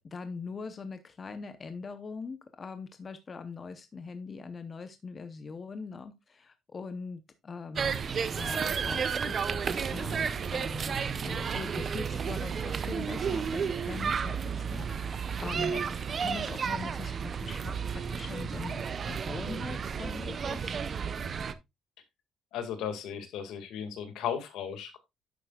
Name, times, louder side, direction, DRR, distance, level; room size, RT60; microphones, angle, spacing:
voice 1, 0.1-8.0 8.4-20.8, left 4 dB, 25° left, 9 dB, 0.7 m, -42 dB
sound 1, 7.8-21.5, right 6 dB, 30° right, 0.6 m, -32 dB
voice 2, 22.5-25.0, left 8 dB, 80° left, 8 dB, 1.8 m, -36 dB
10.5 x 7.7 x 2.3 m, 0.20 s
cardioid pair, 175°, 0 cm